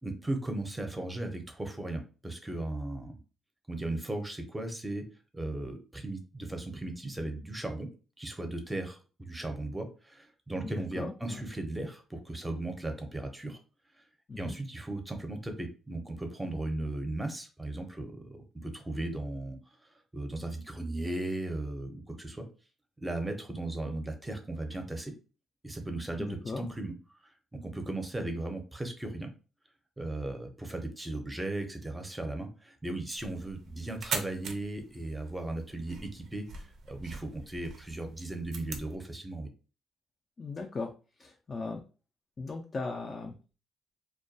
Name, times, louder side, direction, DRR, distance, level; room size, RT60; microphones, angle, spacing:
voice 1, 0.0-3.2 3.7-5.1 5.3-7.9 8.2-13.6 14.4-19.6 20.1-22.5 23.0-25.1 25.6-26.9 27.2-29.3 30.0-39.5, right 2 dB, 10° right, 5 dB, 0.6 m, -37 dB
voice 2, 10.6-11.4 14.3-14.6 26.2-26.7 40.4-40.9 41.2-41.8 42.4-43.3, left 3 dB, 35° left, 2 dB, 0.3 m, -38 dB
sound 1, 33.2-39.0, right 5 dB, 70° right, 0.4 m, -42 dB
2.2 x 2.2 x 2.6 m, 0.35 s
cardioid pair, 90°, 0 cm